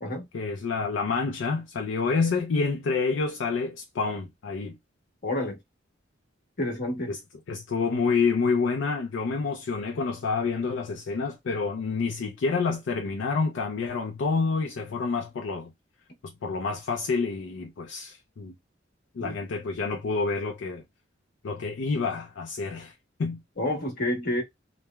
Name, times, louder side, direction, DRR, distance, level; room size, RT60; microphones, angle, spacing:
voice 1, 0.3-4.8 7.1-7.2 7.5-15.7 16.2-18.5 19.1-20.8 21.4-22.9 23.2-23.4, left 4 dB, 75° left, 0.4 m, -28 dB
voice 2, 5.2-5.6 6.6-7.1 19.2-19.3 23.6-24.4, left 1 dB, 55° left, 1.0 m, -29 dB
3.1 x 2.0 x 2.2 m
head